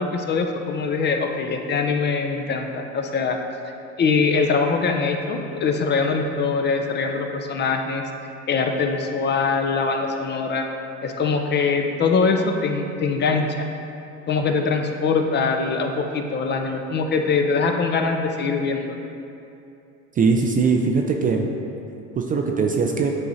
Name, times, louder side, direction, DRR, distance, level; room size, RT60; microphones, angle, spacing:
voice 1, 0.0-3.4 4.0-8.1 8.5-10.6 11.0-13.7 14.3-18.9, left 4 dB, 30° left, 4 dB, 0.5 m, -23 dB
voice 2, 20.2-21.5 22.2-23.1, right 4 dB, 25° right, 2 dB, 0.4 m, -20 dB
9.7 x 3.7 x 2.7 m, 2.7 s
hypercardioid pair, 85°, 37 cm